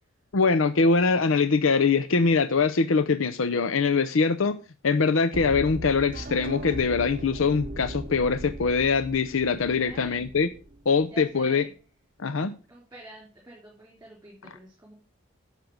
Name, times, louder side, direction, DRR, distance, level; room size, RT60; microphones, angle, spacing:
voice 1, 0.3-4.6 4.8-10.5 10.9-11.6 12.2-12.5, left 4 dB, 70° left, 0.6 m, -23 dB
sound 1, 5.3-11.3, right 1 dB, 40° right, 0.8 m, -38 dB
voice 2, 9.8-10.3 11.0-11.7 12.7-14.9, right 1 dB, 10° right, 3.5 m, -47 dB
10.5 x 6.7 x 6.4 m
head